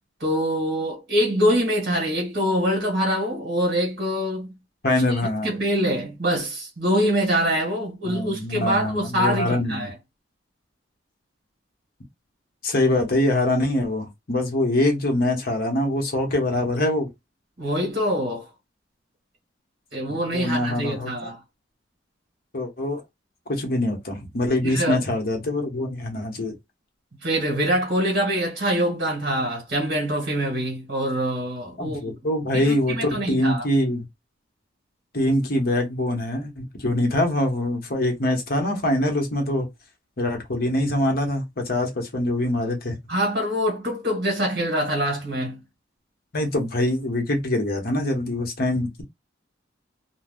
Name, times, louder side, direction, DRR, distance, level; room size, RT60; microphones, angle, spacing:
voice 1, 0.2-4.5 5.1-9.9 17.6-18.5 19.9-21.4 24.6-25.0 27.2-32.2 32.5-33.6 43.1-45.6, equal, 55° right, 1.4 m, -24 dB
voice 2, 4.8-5.5 8.0-9.9 12.6-17.1 20.1-21.3 22.5-23.0 23.5-26.5 31.8-34.0 35.1-39.7 40.2-43.0 46.3-49.0, left 1 dB, 55° left, 1.0 m, -24 dB
2.5 x 2.3 x 3.4 m
head